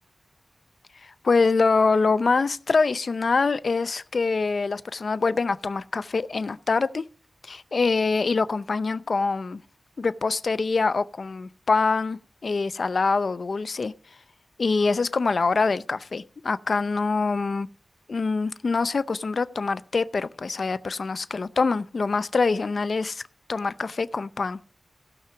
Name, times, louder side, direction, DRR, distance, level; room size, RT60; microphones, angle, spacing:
voice 1, 1.0-7.0 7.4-9.6 10.0-13.9 14.6-17.7 18.1-23.2 23.5-24.6, left 4 dB, 65° left, 0.6 m, -24 dB
16.5 x 5.9 x 5.8 m
wide cardioid pair, 70°, 0 cm